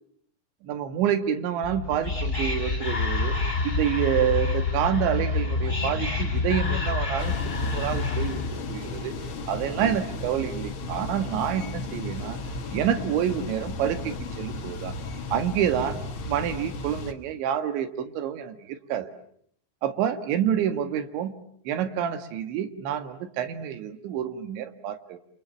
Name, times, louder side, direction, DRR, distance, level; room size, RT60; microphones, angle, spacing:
voice 1, 0.6-3.4 3.6-7.4 7.7-8.4 8.7-9.1 9.5-12.4 12.7-15.0 15.3-16.0 16.3-19.1 19.8-21.3 21.7-25.2, right 9 dB, 85° right, 9 dB, 4.0 m, -28 dB
Whispering, 1.6-8.6, left 4 dB, 10° left, 7.2 m, -27 dB
sound 1, 7.2-17.1, left 3 dB, 65° left, 1.2 m, -35 dB
29.5 x 27.5 x 7.3 m, 0.67 s
omnidirectional pair, 5.1 m